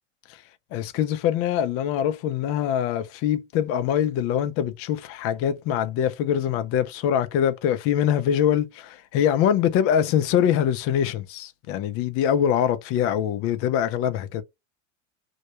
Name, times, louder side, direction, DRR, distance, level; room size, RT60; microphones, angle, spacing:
voice 1, 0.7-14.4, left 9 dB, 40° left, 0.4 m, -23 dB
2.2 x 2.1 x 2.8 m
supercardioid pair, 115°, 38 cm